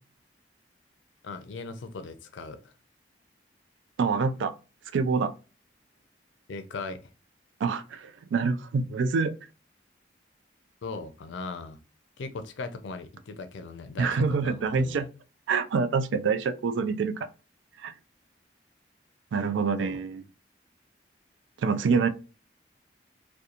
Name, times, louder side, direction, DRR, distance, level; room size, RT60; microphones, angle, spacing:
voice 1, 1.2-2.7 6.5-7.0 10.8-11.8 12.2-15.0 19.8-20.0, left 3 dB, 85° left, 0.4 m, -39 dB
voice 2, 4.0-4.5 4.9-5.3 7.6-9.3 14.0-15.1 15.5-17.3 17.8-17.9 19.3-20.2 21.6-22.1, right 5 dB, 85° right, 0.3 m, -26 dB
2.8 x 2.2 x 2.4 m
head